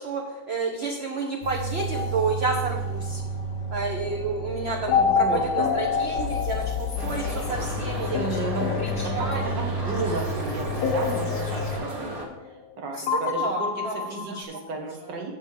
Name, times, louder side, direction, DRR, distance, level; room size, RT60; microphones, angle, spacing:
voice 1, 0.0-3.2 3.7-9.4 12.9-14.0 14.3-14.4, right 4 dB, 50° right, 1 dB, 0.8 m, -30 dB
sound 1, 1.4-11.8, left 1 dB, 90° left, 1.9 m, -32 dB
sound 2, 1.8-3.1 4.9-7.5 8.1-10.1 10.8-12.7 13.1-14.4, left 5 dB, 65° left, 1.1 m, -28 dB
voice 2, 5.0-5.7 6.2-6.4 8.1-12.2 12.4-15.3, right 3 dB, 75° right, 2 dB, 1.9 m, -34 dB
sound 3, 7.0-12.3, right 1 dB, 35° right, 1.2 m, -34 dB
6.6 x 5.2 x 7.0 m, 1.1 s
omnidirectional pair, 1.9 m